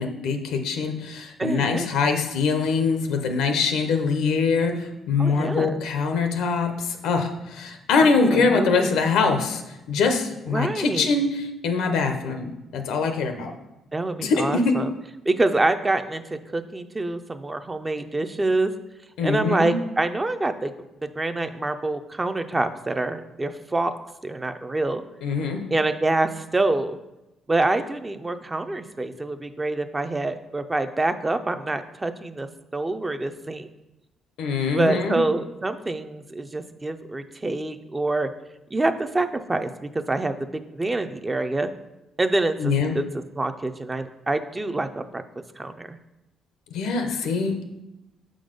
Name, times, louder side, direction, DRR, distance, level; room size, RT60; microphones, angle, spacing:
voice 1, 0.0-9.6 9.9-13.5 14.2-14.8 19.2-19.8 25.2-25.7 34.4-35.2 42.6-43.0 46.7-47.7, left 4 dB, 90° left, 6 dB, 0.7 m, -23 dB
voice 2, 1.4-1.9 5.2-5.8 8.0-8.9 10.5-11.1 13.9-14.9 15.3-16.2 16.5-18.7 19.2-20.7 21.0-23.9 24.2-25.0 25.7-27.0 27.5-33.7 34.7-38.3 38.7-40.3 40.7-41.7 42.2-43.0 43.4-45.2 45.6-46.0, right 2 dB, 20° right, 9 dB, 0.4 m, -26 dB
6.0 x 3.8 x 5.1 m, 0.96 s
cardioid pair, 90°, 0 cm